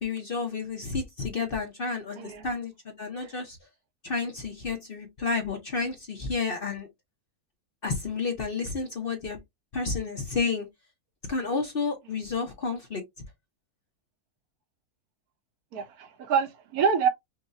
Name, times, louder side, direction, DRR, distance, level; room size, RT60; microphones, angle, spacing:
voice 1, 0.0-3.6 4.0-6.9 7.8-9.4 9.7-10.7 11.3-13.0, left 4 dB, 45° left, 0.8 m, -31 dB
voice 2, 2.2-2.5 15.7-17.1, right 6 dB, 70° right, 1.2 m, -26 dB
5.5 x 2.3 x 2.6 m
omnidirectional pair, 1.7 m